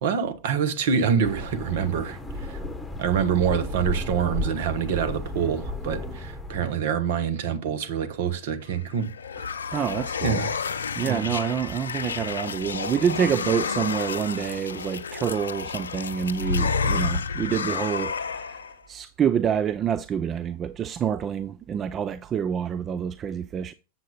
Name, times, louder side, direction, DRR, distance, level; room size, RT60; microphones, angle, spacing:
voice 1, 0.0-2.6 3.0-9.1 10.2-10.6 11.1-11.3, right 7 dB, 55° right, 1.2 m, -26 dB
sound 1, 1.2-6.8, left 1 dB, 5° left, 1.3 m, -33 dB
sound 2, 8.7-18.7, left 5 dB, 70° left, 0.5 m, -30 dB
voice 2, 9.7-10.4 11.0-18.6 18.9-23.7, right 8 dB, 25° right, 0.4 m, -27 dB
7.5 x 7.3 x 3.9 m
figure-of-eight pair, 90°, 0 cm